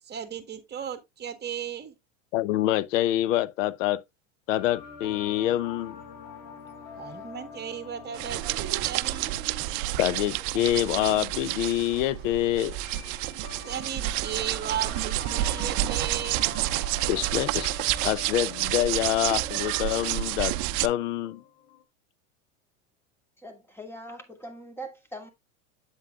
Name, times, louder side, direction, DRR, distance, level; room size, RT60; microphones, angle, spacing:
voice 1, 0.1-1.9 7.0-9.4 13.6-16.5, right 9 dB, 25° right, 1.9 m, -35 dB
voice 2, 2.3-4.0 4.5-6.0 10.0-12.8 17.1-17.7 18.0-20.6 20.8-21.4, left 13 dB, 75° left, 0.8 m, -26 dB
sound 1, 4.5-21.8, left 5 dB, 55° left, 2.7 m, -46 dB
sound 2, 8.1-20.9, right 16 dB, 50° right, 0.6 m, -29 dB
voice 3, 23.4-25.3, right 1 dB, 5° left, 2.5 m, -41 dB
8.3 x 7.6 x 2.4 m
hypercardioid pair, 105°, 39 cm